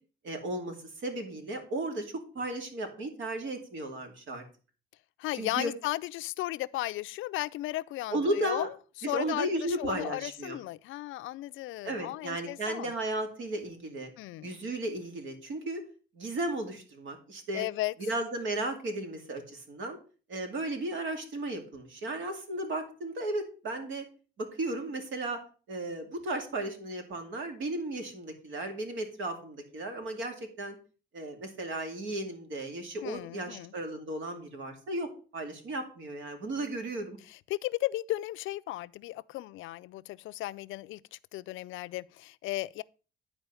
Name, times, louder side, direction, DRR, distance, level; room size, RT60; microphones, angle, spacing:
voice 1, 0.2-0.7 1.0-4.4 5.3-5.7 8.1-8.7 9.0-10.6 11.8-14.1 14.4-15.8 16.1-17.7 18.0-20.0 20.3-24.0 24.4-25.4 25.7-30.8 31.1-37.2, right 1 dB, 70° right, 2.3 m, -35 dB
voice 2, 5.2-12.9 14.2-14.5 17.5-17.9 33.0-33.7 37.3-42.8, left 16 dB, 80° left, 0.4 m, -35 dB
10.0 x 4.5 x 5.6 m
cardioid pair, 90°, 20 cm